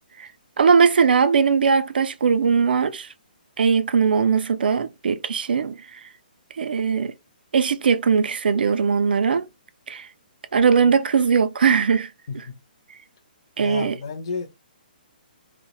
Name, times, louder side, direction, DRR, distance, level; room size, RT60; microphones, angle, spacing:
voice 1, 0.6-3.1 3.6-6.1 6.5-7.1 7.5-9.5 9.9-10.1 10.5-12.4 13.6-14.0, right 6 dB, 80° right, 0.3 m, -20 dB
voice 2, 13.6-14.5, left 4 dB, 35° left, 0.4 m, -32 dB
2.2 x 2.0 x 2.8 m
hypercardioid pair, 175°, 5 cm